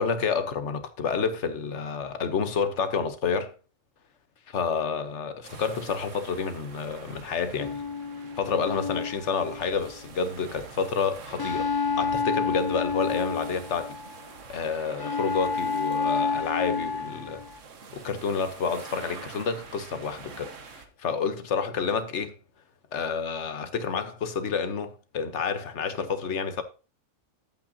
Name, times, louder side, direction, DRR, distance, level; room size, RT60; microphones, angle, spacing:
voice 1, 0.0-3.5 4.5-7.8 8.4-11.7 12.0-14.0 14.5-17.4 17.9-20.5 21.0-22.4 22.9-26.6, left 5 dB, 65° left, 1.3 m, -29 dB
sound 1, 5.4-20.9, right 5 dB, 70° right, 1.5 m, -46 dB
sound 2, 7.6-10.1 11.4-14.2 15.0-17.6, left 5 dB, 25° left, 0.5 m, -29 dB
11.0 x 8.4 x 2.8 m
omnidirectional pair, 1.3 m